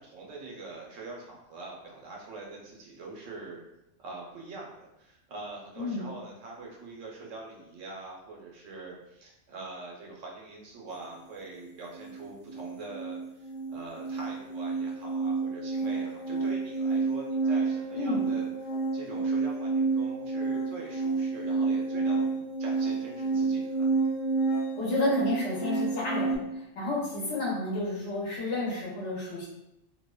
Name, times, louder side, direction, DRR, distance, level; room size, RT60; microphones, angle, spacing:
voice 1, 0.0-3.6 4.0-23.9, right 3 dB, 90° right, -2 dB, 1.0 m, -44 dB
sound 1, 11.6-11.7 12.0-26.4, right 4 dB, 20° right, 1.0 m, -30 dB
voice 2, 17.9-18.3 24.7-29.5, left 2 dB, 75° left, -6 dB, 1.2 m, -31 dB
2.7 x 2.1 x 2.2 m, 0.86 s
omnidirectional pair, 1.3 m